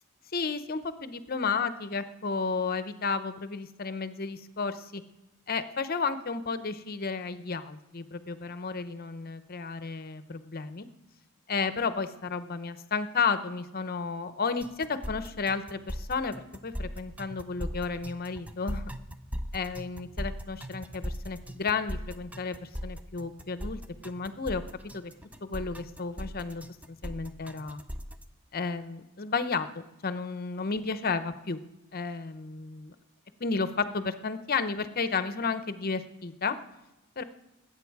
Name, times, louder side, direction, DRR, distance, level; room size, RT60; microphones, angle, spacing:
voice 1, 0.3-5.0 5.5-10.9 11.5-18.9 19.5-24.6 24.9-25.1 25.4-27.8 28.5-29.7 30.0-31.6 31.9-32.9 33.4-36.6 37.2-37.3, left 4 dB, 45° left, 11 dB, 0.8 m, -32 dB
sound 1, 14.6-28.2, equal, 5° right, 0.5 m, -38 dB
20.5 x 8.7 x 4.7 m, 0.97 s
head